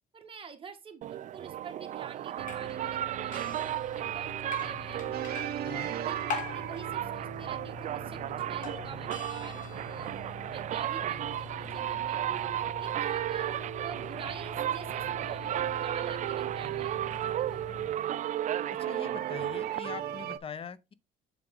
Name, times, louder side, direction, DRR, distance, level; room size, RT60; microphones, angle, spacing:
voice 1, 0.1-5.5 5.9-10.1 10.5-13.5 13.8-18.2, right 6 dB, 30° right, 1.7 m, -47 dB
sound 1, 1.0-20.4, right 12 dB, 45° right, 0.4 m, -35 dB
sound 2, 2.4-17.9, left 3 dB, 50° left, 1.6 m, -43 dB
sound 3, 5.1-8.6 10.3-10.4 11.0-20.4, right 12 dB, 65° right, 0.8 m, -38 dB
voice 2, 18.8-20.9, left 7 dB, 35° left, 0.6 m, -42 dB
7.8 x 5.0 x 3.8 m
cardioid pair, 110°, 17 cm